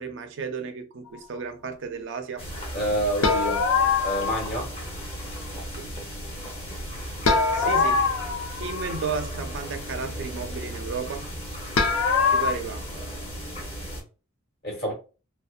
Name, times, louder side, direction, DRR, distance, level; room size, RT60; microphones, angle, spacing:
voice 1, 0.0-2.5 5.7-5.9 7.5-8.0 8.5-11.3 12.3-12.8, right 5 dB, 60° right, 0.5 m, -33 dB
sound 1, 2.4-14.0, equal, 30° left, 0.8 m, -36 dB
voice 2, 2.7-3.7 4.0-4.7 14.6-14.9, equal, 50° left, 1.2 m, -27 dB
sound 2, 3.2-4.6 7.3-9.2 11.8-12.5, left 4 dB, 90° left, 0.5 m, -23 dB
2.7 x 2.0 x 2.3 m
head